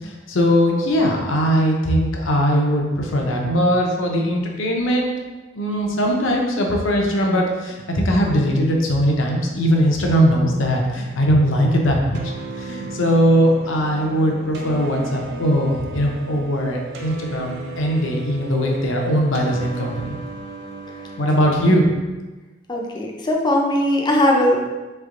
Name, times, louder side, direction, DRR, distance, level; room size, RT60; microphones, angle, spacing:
voice 1, 0.0-5.1 5.5-20.2 21.2-22.0, equal, 65° left, 0 dB, 0.7 m, -20 dB
sound 1, 12.1-21.7, right 3 dB, 55° right, 0.5 m, -36 dB
voice 2, 22.7-24.7, left 1 dB, 20° left, 0 dB, 0.5 m, -19 dB
3.5 x 3.4 x 3.7 m, 1.2 s
head